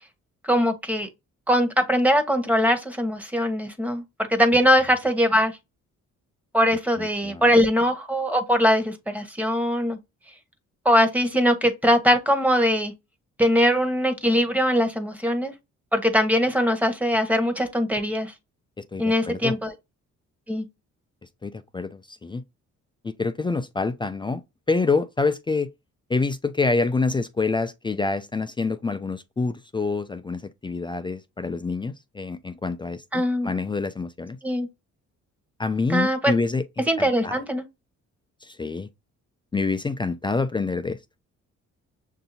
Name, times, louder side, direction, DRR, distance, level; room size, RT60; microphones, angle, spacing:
voice 1, 0.5-1.1 1.5-4.0 4.3-5.5 6.5-10.0 10.8-12.9 13.4-15.5 15.9-18.3 19.0-19.7 20.5-20.6 33.1-33.5 34.4-34.7 35.9-36.3 36.9-37.6, equal, 5° right, 1.1 m, -21 dB
voice 2, 7.0-7.5 18.8-19.6 21.4-22.4 23.0-24.4 24.7-25.7 26.1-34.4 35.6-37.4 38.4-38.9 39.5-41.0, left 3 dB, 15° left, 0.3 m, -27 dB
6.6 x 2.7 x 2.7 m
cardioid pair, 90°, 30 cm